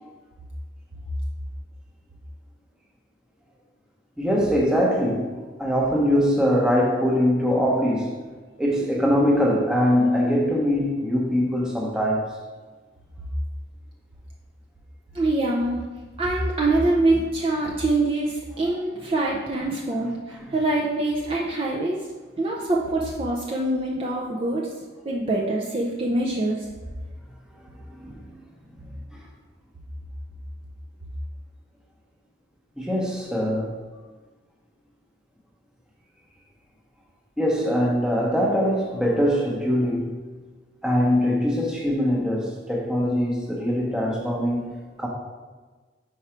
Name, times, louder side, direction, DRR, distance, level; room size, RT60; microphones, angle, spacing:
voice 1, 4.2-8.2 8.6-12.3 20.3-20.4 27.9-28.2 32.8-33.7 37.4-40.1 40.8-45.1, equal, 5° right, -3 dB, 0.9 m, -22 dB
voice 2, 15.1-15.8 16.2-22.0 22.4-24.7 25.0-26.7, right 2 dB, 30° right, -2 dB, 0.5 m, -24 dB
4.9 x 4.6 x 4.4 m, 1.3 s
head